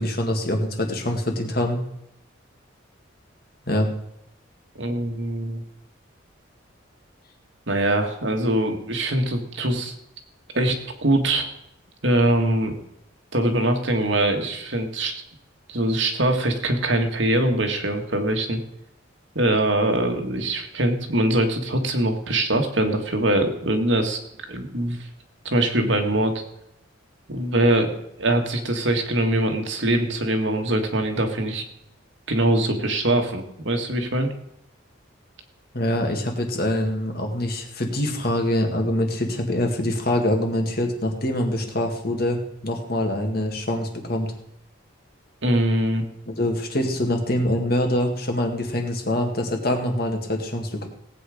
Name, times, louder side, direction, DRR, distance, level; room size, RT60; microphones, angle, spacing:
voice 1, 0.0-1.8 3.7-3.9 35.7-44.3 46.3-50.9, left 1 dB, 50° left, 3 dB, 2.2 m, -24 dB
voice 2, 4.8-5.6 7.7-9.9 10.5-10.8 11.0-11.5 12.0-12.7 13.3-15.2 15.7-18.6 19.4-24.2 24.5-25.1 25.5-26.4 27.3-31.6 32.3-34.3 45.4-46.0, right 1 dB, 70° right, 4 dB, 1.9 m, -22 dB
17.5 x 8.6 x 5.1 m, 0.78 s
head